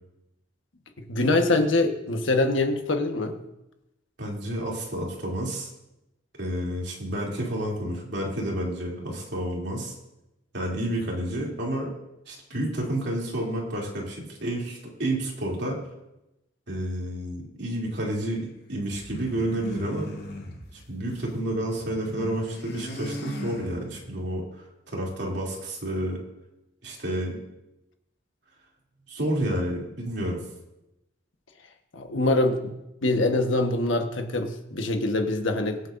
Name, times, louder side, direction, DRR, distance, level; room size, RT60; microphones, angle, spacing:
voice 1, 1.0-3.4 31.9-32.7 33.0-35.8, left 2 dB, 85° left, 5 dB, 1.3 m, -24 dB
voice 2, 4.2-5.7 6.4-10.0 10.5-11.9 12.3-15.8 16.7-20.1 20.7-24.4 24.9-26.2 26.8-27.4 29.1-30.4, right 1 dB, 65° right, -2 dB, 2.9 m, -30 dB
sound 1, 18.9-21.4 21.6-24.2, left 1 dB, 60° left, 1.9 m, -38 dB
23.5 x 7.8 x 2.6 m, 0.91 s
head